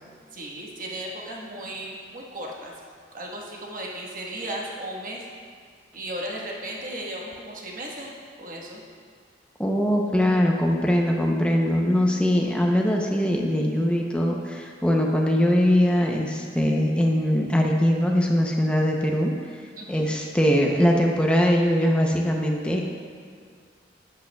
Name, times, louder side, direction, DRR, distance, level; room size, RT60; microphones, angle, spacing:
voice 1, 0.3-2.7 3.1-5.3 5.9-8.1 8.4-8.8 19.8-20.2, right 1 dB, 45° right, -2 dB, 1.3 m, -35 dB
voice 2, 9.6-19.3 19.9-22.9, equal, 5° left, 0 dB, 0.5 m, -21 dB
11.5 x 8.7 x 2.2 m, 2.1 s
head